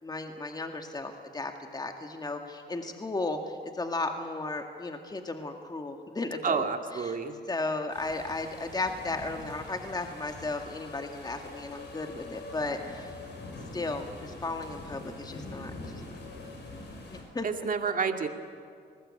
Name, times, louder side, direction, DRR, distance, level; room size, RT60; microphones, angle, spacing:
voice 1, 0.0-7.2 7.5-13.1 13.7-16.5 17.1-17.5, left 2 dB, 20° left, 4 dB, 2.0 m, -35 dB
voice 2, 6.4-7.4 17.4-18.3, right 5 dB, 45° right, 5 dB, 2.3 m, -29 dB
sound 1, 7.9-17.2, left 2 dB, 60° left, 7.0 m, -44 dB
28.5 x 20.0 x 8.7 m, 2.2 s
cardioid pair, 90°, 20 cm